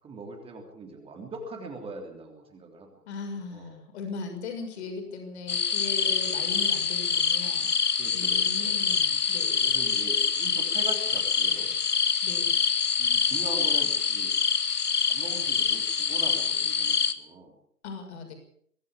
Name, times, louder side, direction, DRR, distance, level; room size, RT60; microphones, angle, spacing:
voice 1, 0.0-3.0 3.5-3.7 6.2-6.4 8.0-8.7 9.6-11.7 13.0-14.3 15.1-17.6, right 3 dB, 10° right, 3 dB, 3.3 m, -41 dB
voice 2, 3.1-7.7 8.1-9.6 12.2-12.6 17.8-18.3, left 4 dB, 45° left, 4 dB, 6.5 m, -38 dB
sound 1, 5.5-17.1, left 6 dB, 75° left, 1.8 m, -25 dB
23.5 x 13.5 x 8.6 m, 0.65 s
figure-of-eight pair, 135°, 46 cm